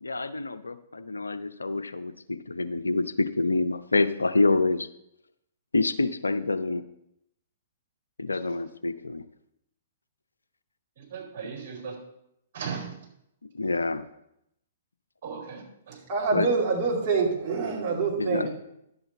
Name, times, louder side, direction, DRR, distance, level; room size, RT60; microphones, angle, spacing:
voice 1, 0.0-4.9 5.7-6.8 8.2-9.2 13.5-14.0 16.3-16.5 18.2-18.5, left 3 dB, 80° left, 12 dB, 0.5 m, -27 dB
voice 2, 11.0-12.0 12.5-12.9 15.2-16.0, right 6 dB, 50° right, 1 dB, 4.3 m, -37 dB
voice 3, 16.1-18.5, right 4 dB, 35° right, -2 dB, 2.5 m, -26 dB
11.0 x 7.9 x 4.1 m, 0.79 s
figure-of-eight pair, 115°, 0 cm